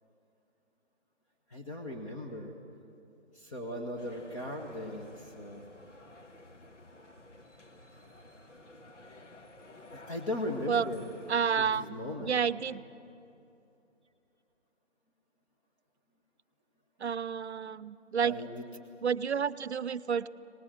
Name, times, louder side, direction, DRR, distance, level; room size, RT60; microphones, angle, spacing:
voice 1, 1.5-2.5 3.3-5.6 9.9-11.1 11.5-12.4 18.2-18.7, left 1 dB, 25° left, 2 dB, 1.4 m, -38 dB
sound 1, 4.0-11.7, left 1 dB, 85° left, 1.8 m, -53 dB
voice 2, 11.3-11.9 12.2-12.8 17.0-18.4 19.0-20.3, right 7 dB, 65° right, 17 dB, 0.6 m, -30 dB
25.0 x 19.0 x 7.7 m, 2.7 s
figure-of-eight pair, 145°, 36 cm